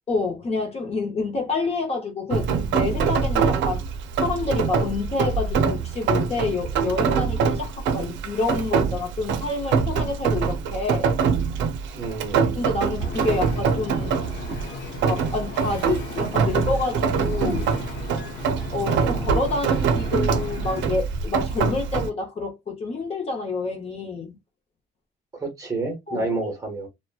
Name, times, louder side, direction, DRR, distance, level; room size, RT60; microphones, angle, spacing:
voice 1, 0.1-3.8 4.2-11.1 12.6-14.2 15.0-17.6 18.7-24.4 26.1-26.3, left 3 dB, 35° left, 0.7 m, -28 dB
Rain, 2.3-22.1, right 6 dB, 80° right, 0.5 m, -24 dB
voice 2, 11.9-12.4 25.3-26.9, right 3 dB, 15° right, 0.8 m, -29 dB
Wind / Ocean, 13.0-20.9, left 4 dB, 75° left, 0.8 m, -36 dB
2.8 x 2.1 x 2.2 m
cardioid pair, 145°, 19 cm